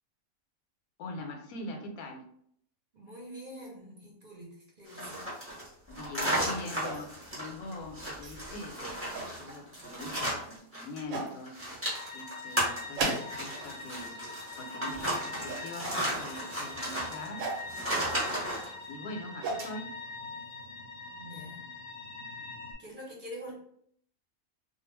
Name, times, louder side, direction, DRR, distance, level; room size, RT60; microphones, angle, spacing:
voice 1, 1.0-2.2 5.9-11.6 12.1-14.2 14.6-17.5 18.9-19.9, left 2 dB, 90° left, 3 dB, 1.1 m, -42 dB
voice 2, 2.9-5.3 21.1-21.7 22.8-23.5, equal, 45° right, -3 dB, 0.7 m, -45 dB
sound 1, 4.9-11.0 11.3-18.7, equal, 15° right, 0.6 m, -35 dB
sound 2, 6.8-7.4 8.2-8.4 8.9-9.3 10.4-10.5 11.1-11.3 12.9-13.6 13.9-14.3 15.5-15.7 17.4-17.7 19.1-19.8, right 3 dB, 70° right, 0.9 m, -35 dB
sound 3, 11.9-22.7, left 3 dB, 65° left, 0.8 m, -43 dB
2.4 x 2.2 x 3.1 m, 0.66 s
omnidirectional pair, 1.5 m